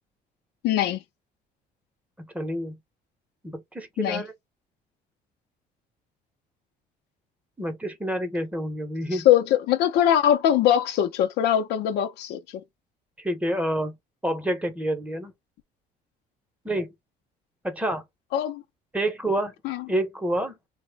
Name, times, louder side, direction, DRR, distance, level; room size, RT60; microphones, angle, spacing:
voice 1, 0.6-1.0 4.0-4.2 9.1-12.6 18.3-18.6 19.6-19.8, left 10 dB, 80° left, 0.5 m, -22 dB
voice 2, 2.2-2.8 3.4-4.3 7.6-9.3 13.2-14.0 14.2-15.3 16.6-16.9 17.6-18.0 18.9-19.5 19.9-20.5, right 1 dB, 10° right, 0.8 m, -28 dB
3.0 x 2.1 x 3.3 m
cardioid pair, 110°, 17 cm